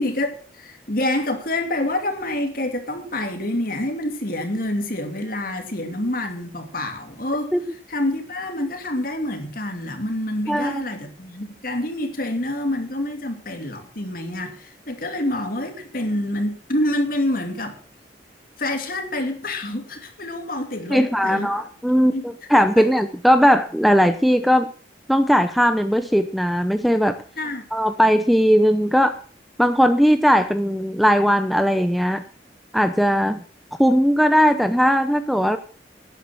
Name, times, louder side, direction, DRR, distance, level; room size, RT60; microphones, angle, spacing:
voice 1, 0.0-7.5 7.9-17.8 18.6-21.5 22.0-22.6 27.4-27.6, left 1 dB, 50° left, 2.7 m, -27 dB
voice 2, 10.5-10.8 20.9-22.1 22.5-24.7 25.1-27.2 27.7-29.2 29.6-32.2 32.7-33.4 33.8-35.6, equal, ahead, 0.7 m, -18 dB
12.0 x 10.5 x 6.2 m
head